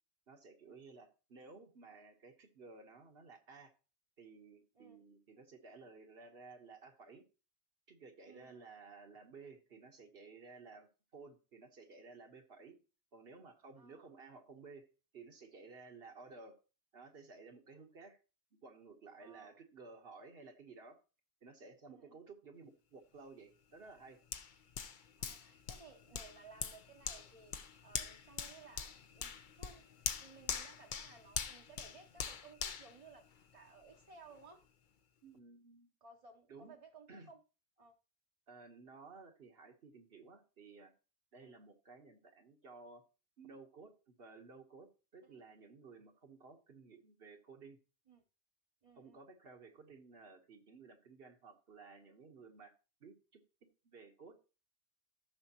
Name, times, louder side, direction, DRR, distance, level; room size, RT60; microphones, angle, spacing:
voice 1, 0.3-3.7 4.2-7.2 7.9-10.9 11.1-12.8 13.1-16.6 16.9-18.2 18.5-21.0 21.4-24.2 35.2-35.9 36.5-36.8 37.1-37.3 38.5-40.9 41.3-43.0 43.4-47.8 48.9-52.7 53.0-53.4 53.8-54.4, right 4 dB, 70° right, 4 dB, 1.5 m, -56 dB
voice 2, 8.2-8.7 13.8-14.1 19.2-19.6 21.9-22.2 25.2-29.8 30.2-33.3 33.5-34.6 36.0-37.4 37.8-37.9 41.4-41.5 45.3-45.4 48.1-48.2 48.8-49.2, right 4 dB, 35° right, 2 dB, 0.8 m, -59 dB
Hands, 24.3-33.8 34.3-34.4, left 7 dB, 55° left, 0.8 m, -43 dB
14.0 x 6.3 x 2.9 m, 0.33 s
omnidirectional pair, 1.1 m